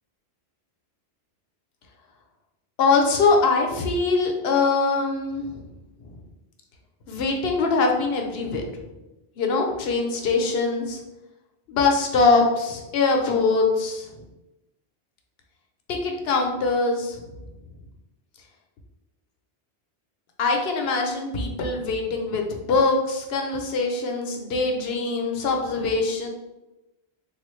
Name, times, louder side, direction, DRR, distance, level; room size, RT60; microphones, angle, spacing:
voice 1, 2.8-5.7 6.0-6.1 7.1-8.6 9.4-11.0 11.7-14.1 15.9-17.2 20.4-26.3, left 3 dB, 70° left, 2 dB, 0.8 m, -23 dB
3.5 x 2.4 x 3.1 m, 1.0 s
omnidirectional pair, 1.1 m